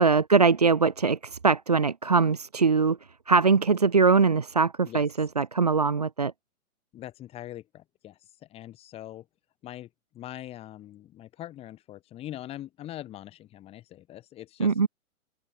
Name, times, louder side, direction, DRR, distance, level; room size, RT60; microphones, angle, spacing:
voice 1, 0.0-3.0 3.3-6.3 14.6-14.9, right 4 dB, 30° right, 0.5 m, -22 dB
voice 2, 6.9-9.3 9.6-9.9 10.1-14.8, left 13 dB, 15° left, 6.0 m, -42 dB
open air
hypercardioid pair, 175°, 44 cm